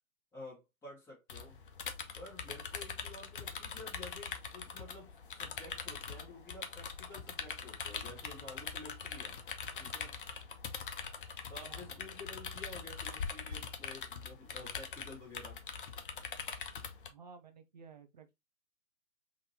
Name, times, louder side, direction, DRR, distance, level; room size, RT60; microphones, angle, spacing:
voice 1, 0.3-1.6 2.1-9.4 9.8-10.1 11.5-15.6, left 2 dB, 5° left, 1.3 m, -51 dB
sound 1, 1.3-17.1, left 6 dB, 40° left, 0.5 m, -43 dB
voice 2, 11.6-12.1 17.1-18.3, right 5 dB, 35° right, 0.4 m, -55 dB
3.8 x 2.7 x 2.7 m
figure-of-eight pair, 135°, 42 cm